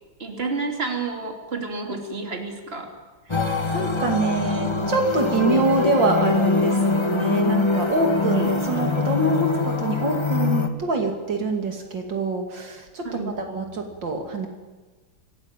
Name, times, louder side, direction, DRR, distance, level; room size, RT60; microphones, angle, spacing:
voice 1, 0.2-2.9 13.0-13.4, right 3 dB, 30° right, 3 dB, 3.3 m, -30 dB
sound 1, 3.3-10.7, left 4 dB, 15° left, 1.5 m, -23 dB
voice 2, 3.3-14.5, right 2 dB, 70° right, 3 dB, 3.3 m, -25 dB
26.5 x 18.0 x 9.1 m, 1.3 s
omnidirectional pair, 2.1 m